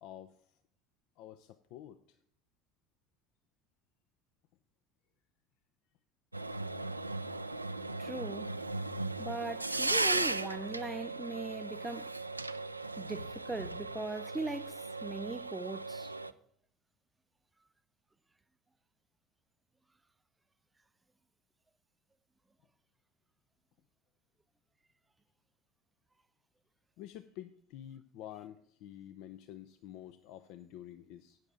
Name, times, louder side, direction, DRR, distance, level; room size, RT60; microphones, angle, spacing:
voice 1, 0.0-0.5 1.2-2.2 27.0-31.4, left 11 dB, 55° left, 0.5 m, -49 dB
sound 1, 6.3-16.3, right 2 dB, 90° right, 0.3 m, -37 dB
voice 2, 8.0-8.6 9.2-12.1 13.0-16.1, right 3 dB, 15° right, 0.3 m, -40 dB
12.5 x 9.0 x 3.8 m
figure-of-eight pair, 65°, 0 cm